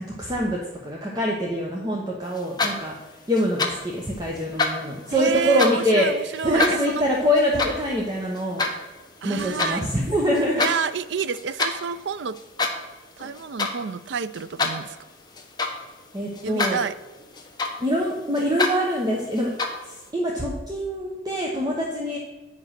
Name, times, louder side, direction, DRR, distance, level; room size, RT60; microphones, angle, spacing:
voice 1, 0.2-2.9 3.3-6.1 6.4-8.6 9.2-10.6 16.1-16.8 17.8-19.5 19.9-22.2, equal, 20° right, -2 dB, 1.1 m, -24 dB
sound 1, 2.3-3.0 3.3-3.9 4.3-5.9 6.3-9.8 10.2-10.8 11.1-11.8 12.3-12.9 13.2-13.8 14.1-15.9 16.3-16.9 17.2-18.0 18.3-18.8 19.3-19.9, left 3 dB, 25° left, 1.1 m, -27 dB
voice 2, 5.1-7.0 9.2-9.8 10.6-12.4 13.2-15.0 16.4-17.0, right 6 dB, 70° right, 15 dB, 0.4 m, -29 dB
9.7 x 5.0 x 5.8 m, 1.2 s
head